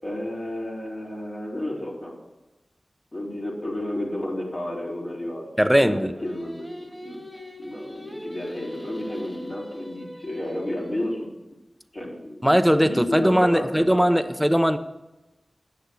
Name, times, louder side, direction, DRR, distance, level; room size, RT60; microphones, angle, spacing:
voice 1, 0.0-2.1 3.1-7.2 7.6-11.3 11.9-14.0, left 1 dB, 40° left, -3 dB, 3.6 m, -32 dB
voice 2, 5.6-6.1 12.4-14.8, equal, 5° right, 9 dB, 0.8 m, -19 dB
Singing, 6.1-11.3, equal, 15° left, 3.3 m, -41 dB
9.9 x 6.6 x 7.6 m, 1.0 s
wide cardioid pair, 55°, 0 cm